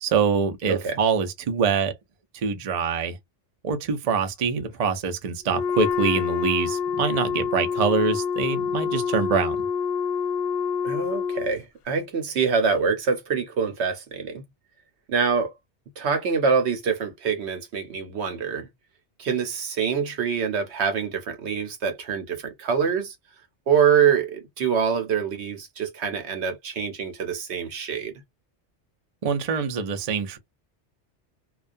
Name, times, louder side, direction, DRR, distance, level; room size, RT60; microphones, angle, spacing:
voice 1, 0.0-1.9 2.4-3.2 3.6-9.6 29.2-30.4, right 5 dB, 50° right, 0.5 m, -24 dB
Wind instrument woodwind instrument, 5.5-11.6, left 6 dB, 65° left, 0.7 m, -27 dB
voice 2, 10.8-14.4 15.1-15.5 16.0-18.7 19.2-23.1 23.7-28.1, right 6 dB, 70° right, 1.0 m, -25 dB
2.2 x 2.2 x 2.5 m
omnidirectional pair, 1.2 m